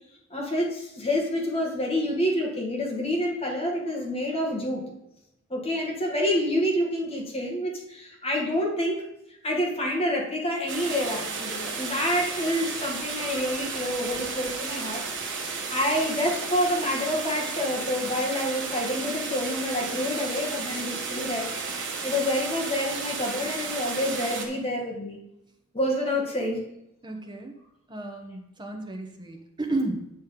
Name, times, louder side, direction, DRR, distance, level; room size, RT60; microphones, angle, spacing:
voice 1, 0.3-4.9 5.5-9.0 9.4-15.3 15.7-21.5 22.0-25.2 25.7-26.6, left 1 dB, 25° left, -2 dB, 1.9 m, -28 dB
sound 1, 10.7-24.5, right 4 dB, 55° right, 1.4 m, -33 dB
voice 2, 27.0-27.6 27.9-30.1, right 2 dB, 20° right, 2 dB, 1.1 m, -32 dB
9.0 x 6.3 x 3.8 m, 0.84 s
head